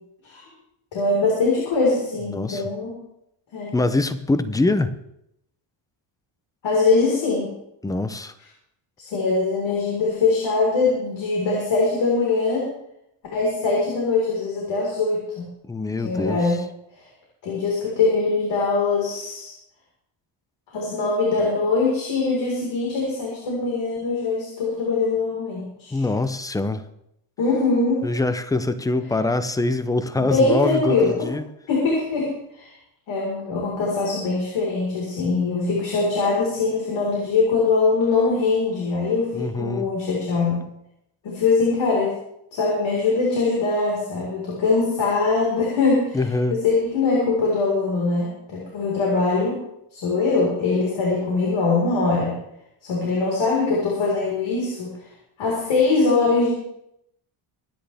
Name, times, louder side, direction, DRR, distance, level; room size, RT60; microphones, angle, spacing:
voice 1, 0.9-3.0 3.5-3.7 6.6-7.5 9.0-12.7 13.3-15.5 16.0-16.6 17.0-17.1 17.4-19.5 20.7-26.0 27.4-28.0 30.2-31.1 31.7-32.7 33.1-40.6 41.2-42.1 42.5-46.2 46.5-49.6 49.9-52.3 52.8-54.9 55.4-56.5, left 3 dB, 65° left, -4 dB, 4.4 m, -22 dB
voice 2, 2.3-2.6 3.7-4.9 7.8-8.3 15.7-16.6 25.9-26.8 28.0-31.4 39.3-39.9 46.1-46.6, left 2 dB, 10° left, 12 dB, 0.4 m, -24 dB
25.0 x 10.5 x 3.4 m, 0.80 s
cardioid pair, 170°, 49 cm